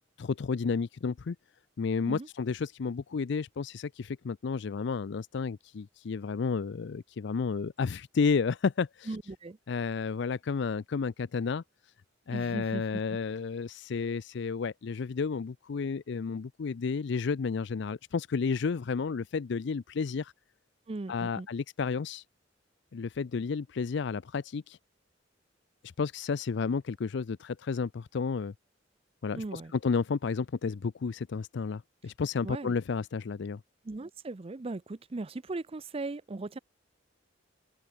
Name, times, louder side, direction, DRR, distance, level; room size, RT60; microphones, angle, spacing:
voice 1, 0.2-1.4 1.8-9.1 9.7-11.6 12.3-20.3 21.1-22.2 22.9-24.8 26.0-28.5 29.2-33.6, left 5 dB, 65° left, 0.4 m, -31 dB
voice 2, 9.1-9.6 12.3-13.0 20.9-21.5 29.3-29.7 32.4-32.7 33.8-36.6, right 2 dB, 30° right, 0.5 m, -38 dB
open air
head